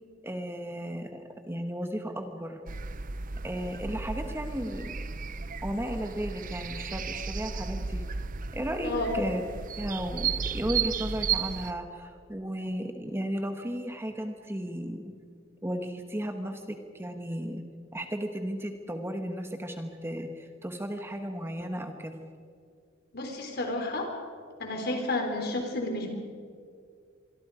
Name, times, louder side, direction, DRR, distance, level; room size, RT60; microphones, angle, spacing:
voice 1, 0.2-2.6 3.4-4.9 5.6-8.0 8.5-9.4 9.8-15.1 15.6-17.6 17.9-22.2, equal, 10° right, 5 dB, 1.2 m, -34 dB
sound 1, 2.7-11.7, right 6 dB, 45° right, 0.7 m, -34 dB
voice 2, 23.1-24.1 24.6-26.1, left 2 dB, 55° left, 3 dB, 4.2 m, -31 dB
26.0 x 23.0 x 5.0 m, 2.2 s
head